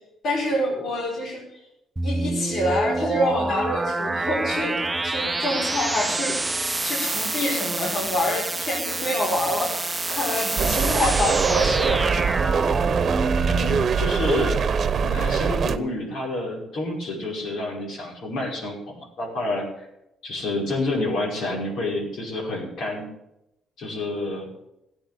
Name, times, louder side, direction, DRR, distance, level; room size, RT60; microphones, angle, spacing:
voice 1, 0.2-1.6 2.0-6.4 6.8-12.0, left 1 dB, 60° left, -3 dB, 4.9 m, -26 dB
sound 1, 2.0-13.8, right 2 dB, 15° right, 0.7 m, -27 dB
sound 2, 10.6-15.8, right 6 dB, 50° right, 1.0 m, -23 dB
voice 2, 13.5-14.6 15.0-19.9 20.2-23.1 23.8-24.5, left 2 dB, 75° left, -3 dB, 5.4 m, -29 dB
14.0 x 8.8 x 8.6 m, 0.85 s
cardioid pair, 90°, 0 cm